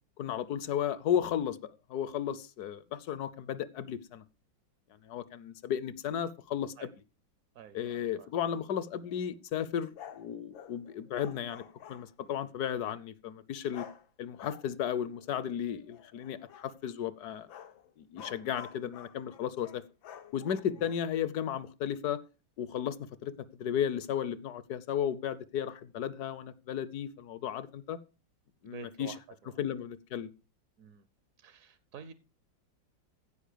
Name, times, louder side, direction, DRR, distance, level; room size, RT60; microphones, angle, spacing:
voice 1, 0.2-4.2 5.0-6.9 7.7-11.6 11.9-13.9 14.2-17.5 18.0-19.8 20.3-22.2 22.6-23.3 23.6-28.0 28.6-29.1 29.6-30.3, left 9 dB, 65° left, 1.1 m, -34 dB
voice 2, 7.5-8.3 20.8-20.9 28.6-29.5 30.8-31.1 31.4-32.1, right 9 dB, 60° right, 0.9 m, -49 dB
sound 1, 8.6-9.3 10.0-12.3 13.7-14.1 14.4-16.7 17.3-21.1, left 9 dB, 90° left, 1.8 m, -51 dB
15.5 x 5.3 x 6.7 m
omnidirectional pair, 2.1 m